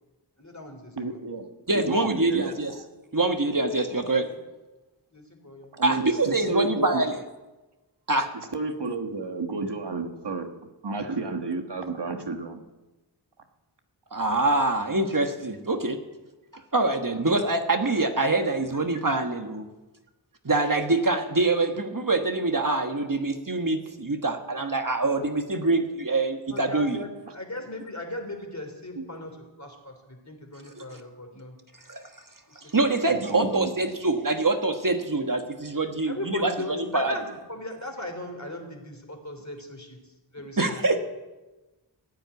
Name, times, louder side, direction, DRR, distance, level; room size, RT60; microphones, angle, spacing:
voice 1, 0.4-1.1 3.1-3.4 4.2-4.3 5.1-5.7 26.5-31.6 32.5-32.6 36.1-40.0 40.3-40.8, left 1 dB, 40° left, 4 dB, 3.3 m, -38 dB
voice 2, 1.0-1.5 1.7-2.6 3.9-4.1 5.7-7.0 8.3-10.5 10.8-12.6 28.9-29.0 33.1-33.9, right 3 dB, 65° right, 5 dB, 1.4 m, -31 dB
voice 3, 1.7-2.7 3.1-4.3 5.8-7.2 8.1-8.3 14.1-16.0 16.7-19.7 20.4-27.0 30.8-31.0 31.9-32.0 32.7-37.2 40.6-41.0, right 2 dB, 45° right, 5 dB, 1.4 m, -25 dB
14.5 x 9.0 x 9.4 m, 1.1 s
wide cardioid pair, 50°, 44 cm